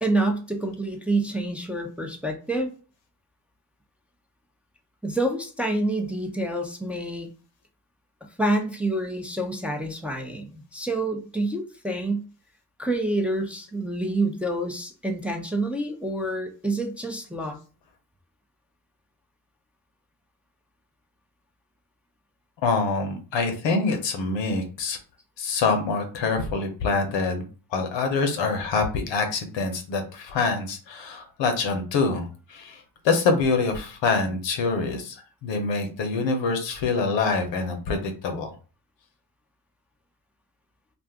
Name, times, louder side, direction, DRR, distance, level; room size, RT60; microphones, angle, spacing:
voice 1, 0.0-2.7 5.0-7.3 8.4-12.3 12.8-17.6, right 1 dB, 5° right, 2 dB, 0.6 m, -27 dB
voice 2, 22.6-25.0 25.4-38.5, left 4 dB, 75° left, 5 dB, 0.9 m, -25 dB
2.5 x 2.4 x 3.4 m, 0.36 s
supercardioid pair, 60°, 45 cm